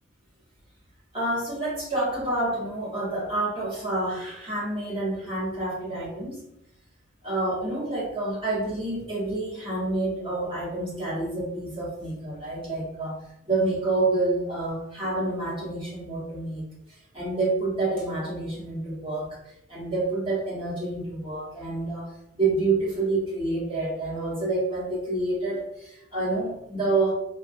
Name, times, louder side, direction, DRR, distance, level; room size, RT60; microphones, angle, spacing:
voice 1, 1.1-6.4 7.2-13.2 13.4-27.1, right 2 dB, 25° right, -7 dB, 1.1 m, -28 dB
4.3 x 2.2 x 2.6 m, 0.84 s
head